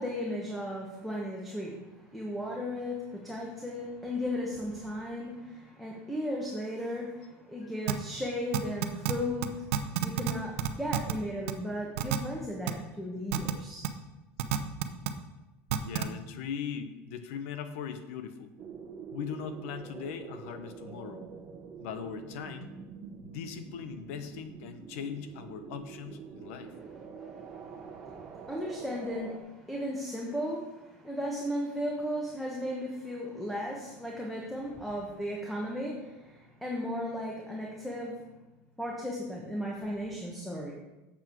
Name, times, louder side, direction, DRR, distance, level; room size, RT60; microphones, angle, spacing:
voice 1, 0.0-13.8 27.3-38.2 38.8-40.7, equal, ahead, -3 dB, 1.4 m, -36 dB
sound 1, 7.9-8.0 8.5-9.1 9.4-9.5 9.7-10.3 10.6-11.1 11.5-11.6 12.0-12.2 12.7-12.8 13.3-13.5 13.8-13.9 14.4-15.1 15.7-16.0, right 13 dB, 85° right, 0.7 m, -28 dB
voice 2, 15.7-18.5 19.1-21.3 21.8-22.7 23.2-26.7, left 7 dB, 80° left, 9 dB, 1.0 m, -39 dB
sound 2, 18.6-29.4, right 6 dB, 35° right, 0.9 m, -46 dB
7.7 x 7.3 x 4.7 m, 1.0 s
supercardioid pair, 125°, 7 cm